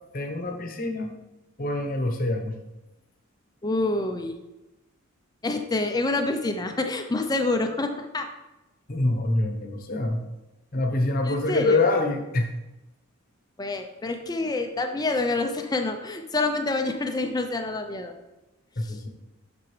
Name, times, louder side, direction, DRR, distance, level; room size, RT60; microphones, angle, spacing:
voice 1, 0.1-1.2 1.6-2.6 8.9-10.2 10.7-12.5 18.8-19.1, left 2 dB, 40° left, 4 dB, 0.9 m, -25 dB
voice 2, 3.6-4.4 5.4-8.3 11.2-11.8 13.6-18.1 18.8-19.0, left 2 dB, 15° left, 5 dB, 0.4 m, -27 dB
7.6 x 6.1 x 3.2 m, 1.0 s
head